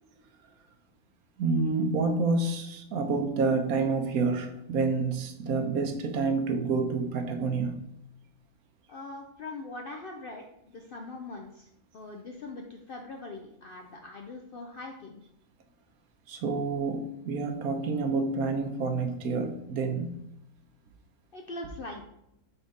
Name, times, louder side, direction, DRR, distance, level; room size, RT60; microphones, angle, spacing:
voice 1, 1.4-7.8 16.3-20.2, right 4 dB, 75° right, 6 dB, 1.2 m, -28 dB
voice 2, 8.9-15.2 21.3-22.0, left 2 dB, 65° left, 2 dB, 0.5 m, -42 dB
4.3 x 4.3 x 5.2 m, 0.83 s
omnidirectional pair, 1.6 m